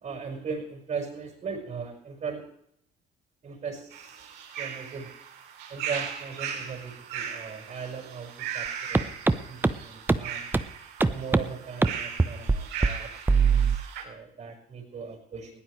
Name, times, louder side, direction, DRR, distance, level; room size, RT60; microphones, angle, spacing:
voice 1, 0.0-2.4 3.4-4.2 4.6-5.1 5.7-9.1 9.5-10.5 11.1-13.1 13.5-13.6 14.0-15.5, right 5 dB, 45° right, 0 dB, 5.2 m, -38 dB
sound 1, 3.9-14.0, right 8 dB, 85° right, 3.4 m, -38 dB
sound 2, 8.9-9.0 9.3-9.4 9.6-9.7 10.1-10.2 10.5-10.6 11.0-11.4 11.8-11.9 12.2-12.6 12.8-12.9 13.3-13.8, right 4 dB, 10° right, 0.8 m, -20 dB
20.5 x 15.5 x 3.2 m, 0.71 s
cardioid pair, 110°, 17 cm